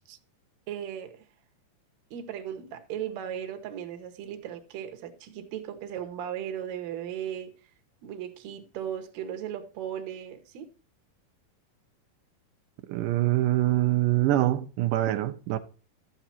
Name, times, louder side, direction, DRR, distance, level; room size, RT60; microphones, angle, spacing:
voice 1, 0.7-1.2 2.1-7.5 8.0-10.7, right 9 dB, 65° right, 2.1 m, -36 dB
voice 2, 12.9-15.6, right 15 dB, 85° right, 2.3 m, -24 dB
12.5 x 7.3 x 2.8 m
omnidirectional pair, 3.8 m